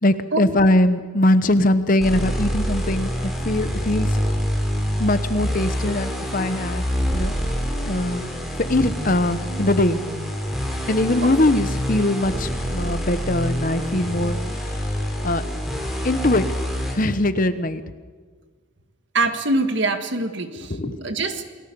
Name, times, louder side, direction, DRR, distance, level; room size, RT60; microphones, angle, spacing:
voice 1, 0.0-4.1 5.0-6.8 7.1-7.3 7.9-8.3 8.6-10.0 10.9-14.4 15.2-15.4 16.0-16.4 16.9-17.8 20.7-20.9, left 1 dB, 40° left, 12 dB, 1.0 m, -21 dB
sound 1, 2.0-16.9, equal, ahead, 3.7 m, -26 dB
voice 2, 19.1-21.4, right 2 dB, 55° right, 8 dB, 1.7 m, -24 dB
28.5 x 19.0 x 7.0 m, 1.5 s
head